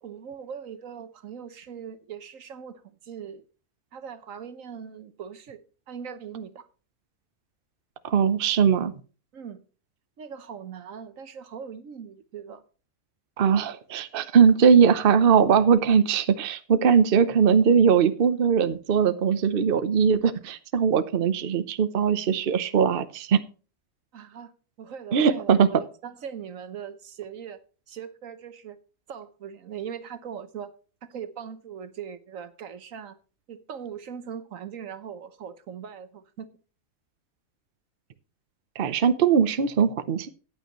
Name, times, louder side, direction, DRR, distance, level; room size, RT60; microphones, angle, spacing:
voice 1, 0.0-3.4 3.9-5.6 5.9-6.7 9.3-9.6 10.2-12.6 24.1-24.5 24.8-27.6 27.9-28.8 29.1-30.7 31.0-33.2 33.5-36.5, right 7 dB, 70° right, 1.4 m, -40 dB
voice 2, 8.0-8.9 13.4-23.4 25.1-25.7 38.8-40.3, right 7 dB, 45° right, 0.9 m, -20 dB
14.5 x 9.3 x 3.0 m
omnidirectional pair, 1.5 m